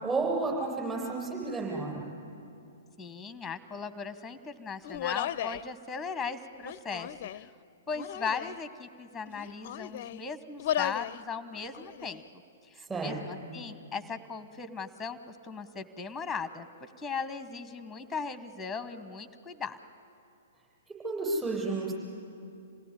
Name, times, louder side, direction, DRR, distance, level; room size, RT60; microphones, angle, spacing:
voice 1, 0.0-2.1 12.9-13.5 21.0-21.9, right 3 dB, 15° right, -3 dB, 7.6 m, -31 dB
voice 2, 3.0-7.5 7.9-12.2 12.7-19.8, left 5 dB, 5° left, 13 dB, 1.2 m, -38 dB
Human voice, 4.8-5.7 6.6-7.5 7.9-8.6 9.3-10.2 10.6-11.2 11.6-12.2, left 11 dB, 50° left, 0.5 m, -35 dB
27.5 x 17.5 x 9.9 m, 2.6 s
figure-of-eight pair, 115°, 0 cm